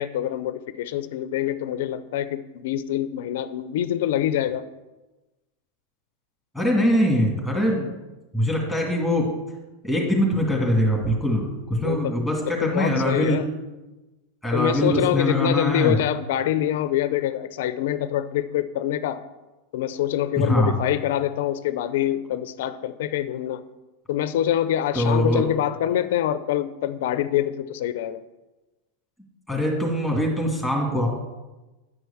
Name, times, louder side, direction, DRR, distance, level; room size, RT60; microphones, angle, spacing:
voice 1, 0.0-4.7 11.8-12.1 12.6-13.5 14.5-19.2 19.7-23.6 24.1-28.2, left 11 dB, 75° left, 13 dB, 0.5 m, -25 dB
voice 2, 6.5-7.9 8.3-9.3 9.8-13.4 14.4-16.0 20.4-20.7 24.9-25.4 29.5-31.1, equal, 5° right, -1 dB, 2.1 m, -22 dB
9.5 x 4.6 x 7.0 m, 1.1 s
supercardioid pair, 125°, 0 cm